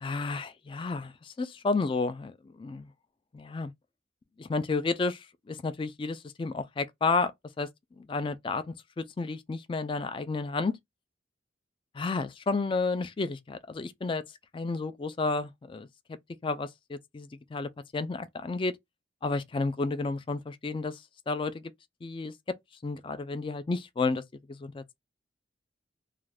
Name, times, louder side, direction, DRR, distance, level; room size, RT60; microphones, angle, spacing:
voice 1, 0.0-2.3 2.6-2.9 3.3-3.7 4.4-7.3 7.6-7.7 8.0-10.7 12.0-14.2 14.5-16.2 16.4-18.7 19.2-21.6 22.0-22.3 22.8-24.2 24.5-25.0, left 3 dB, 25° left, 0.3 m, -31 dB
2.4 x 2.3 x 3.3 m
head